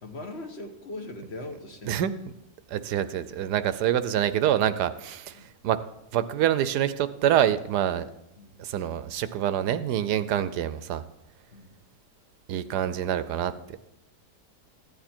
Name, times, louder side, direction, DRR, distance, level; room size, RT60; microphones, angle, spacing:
voice 1, 0.0-2.0 5.3-5.5 8.4-8.6 11.5-11.7, left 2 dB, 45° left, 5 dB, 1.2 m, -40 dB
voice 2, 2.7-5.8 6.1-8.0 8.6-11.0 12.5-13.8, right 10 dB, 80° right, 14 dB, 1.2 m, -26 dB
14.5 x 9.5 x 4.4 m, 0.86 s
omnidirectional pair, 1.8 m